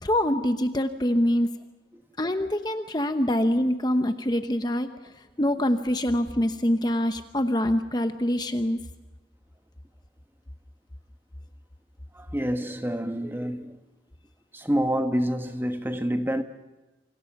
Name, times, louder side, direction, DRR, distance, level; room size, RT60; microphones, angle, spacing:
voice 1, 0.0-1.5 2.2-8.8, left 1 dB, 20° left, 0.9 m, -25 dB
voice 2, 12.1-13.8 14.5-16.4, equal, 10° right, 1.3 m, -27 dB
28.0 x 26.0 x 5.9 m
head